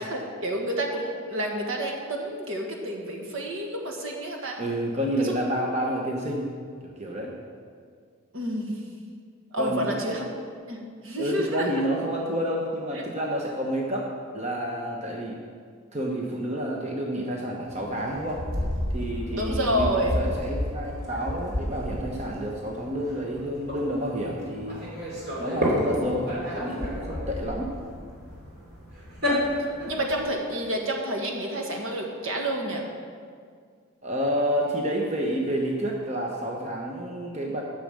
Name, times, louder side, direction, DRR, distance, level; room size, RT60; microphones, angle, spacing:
voice 1, 0.0-4.6 5.2-5.3 8.3-8.8 9.5-10.3 10.7-11.8 12.9-13.0 19.3-20.3 29.9-32.8, right 1 dB, 65° right, 1 dB, 1.6 m, -29 dB
voice 2, 4.6-6.5 6.8-7.4 9.6-10.0 11.2-14.1 14.3-15.4 15.9-18.4 18.9-24.8 25.4-27.7 34.0-37.6, equal, 30° right, -1 dB, 0.9 m, -29 dB
sound 1, 17.7-30.3, equal, 45° right, 3.0 m, -31 dB
10.5 x 6.3 x 7.4 m, 2.1 s
head